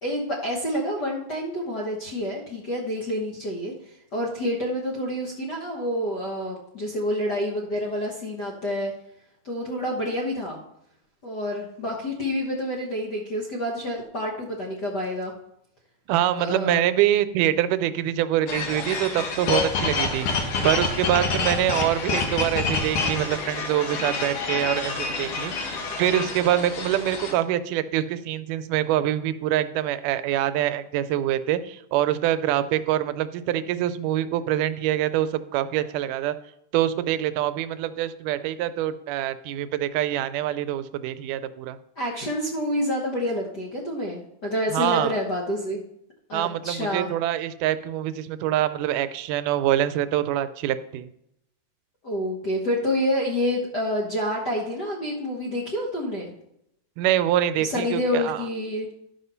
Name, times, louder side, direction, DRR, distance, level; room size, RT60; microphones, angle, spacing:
voice 1, 0.0-3.7 4.1-8.9 9.4-10.6 11.2-15.3 16.4-16.9 42.0-45.8 46.3-47.1 52.0-56.3 57.6-58.9, equal, 50° left, -2 dB, 1.2 m, -28 dB
voice 2, 16.1-36.4 36.7-41.8 44.7-45.2 46.3-51.1 57.0-58.5, right 12 dB, 90° right, 12 dB, 2.1 m, -25 dB
sound 1, 18.5-27.3, left 4 dB, 75° left, 2.9 m, -27 dB
12.0 x 5.5 x 5.6 m, 0.79 s
omnidirectional pair, 3.6 m